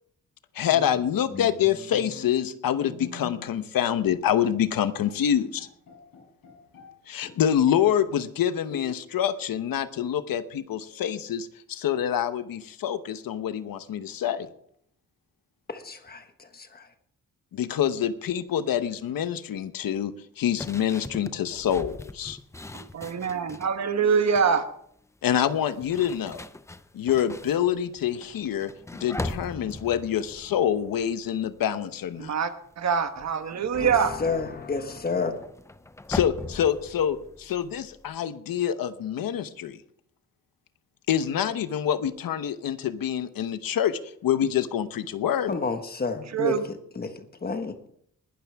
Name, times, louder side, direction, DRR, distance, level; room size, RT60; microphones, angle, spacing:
voice 1, 0.5-5.7 7.1-14.5 17.5-22.4 25.2-26.4 26.9-28.7 29.0-32.3 36.1-39.8 41.1-45.6, left 9 dB, 90° left, 11 dB, 1.0 m, -26 dB
Bowed string instrument, 0.7-3.7 4.1-4.3 4.7-4.8 5.0-6.9 7.2-8.0 8.7-9.3, left 4 dB, 65° left, 7.8 m, -44 dB
voice 2, 15.7-16.9 33.7-35.4 45.5-47.8, left 4 dB, 30° left, 7 dB, 1.4 m, -31 dB
sound 1, 20.6-23.8 24.1-24.6 25.5-31.7 32.0-32.4 32.7-38.1, left 2 dB, 10° left, 0.4 m, -40 dB
voice 3, 22.9-24.7 32.2-32.5 32.8-34.1 46.3-46.7, right 6 dB, 55° right, 9 dB, 1.2 m, -24 dB
20.0 x 11.5 x 3.5 m, 0.68 s
wide cardioid pair, 170°, 34 cm